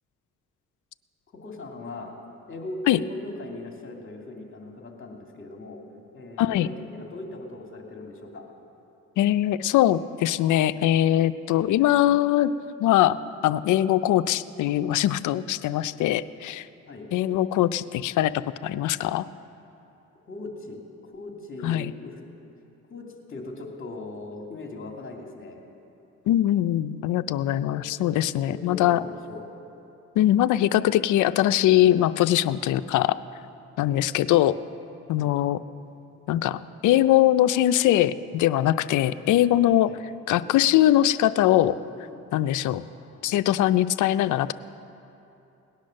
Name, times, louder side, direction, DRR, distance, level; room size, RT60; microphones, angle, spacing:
voice 1, 1.4-2.2 2.5-5.8 6.1-8.4 16.9-17.1 20.3-22.2 22.9-25.6 27.7-27.8 28.5-29.4 35.2-35.4 39.9-40.0 42.6-43.3, left 2 dB, 40° left, 1 dB, 2.5 m, -39 dB
voice 2, 6.4-6.7 9.2-12.5 12.8-13.2 13.4-16.7 17.1-19.3 21.6-21.9 26.3-29.0 30.2-33.2 33.8-34.6 35.1-35.6 36.3-39.9 40.3-41.8 42.3-42.8 43.2-44.5, left 13 dB, 80° left, 13 dB, 0.5 m, -22 dB
18.5 x 10.5 x 6.5 m, 2.9 s
cardioid pair, 90°, 30 cm